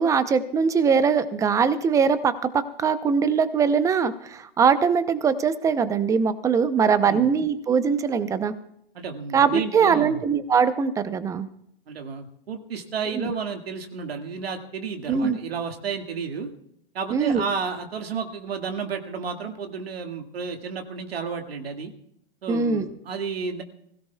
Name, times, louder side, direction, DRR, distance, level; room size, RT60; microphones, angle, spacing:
voice 1, 0.0-8.5 9.3-11.5 13.1-13.3 15.1-15.4 17.1-17.4 22.5-22.9, right 6 dB, 10° right, 13 dB, 0.6 m, -22 dB
voice 2, 8.9-10.2 11.9-16.5 16.9-21.9 22.4-23.6, right 5 dB, 75° right, 5 dB, 2.1 m, -32 dB
24.5 x 16.5 x 2.3 m, 0.71 s
hypercardioid pair, 135°, 30 cm